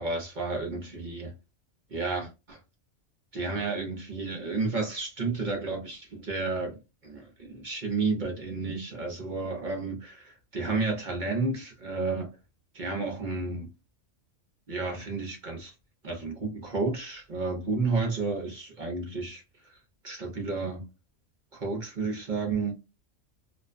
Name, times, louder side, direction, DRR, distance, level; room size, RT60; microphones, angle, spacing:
voice 1, 0.0-1.3 1.9-2.6 3.3-12.3 12.7-13.7 14.7-15.7 16.0-19.8 20.0-20.8 21.5-22.7, right 3 dB, 50° right, 0.6 m, -31 dB
2.4 x 2.1 x 2.4 m
omnidirectional pair, 1.3 m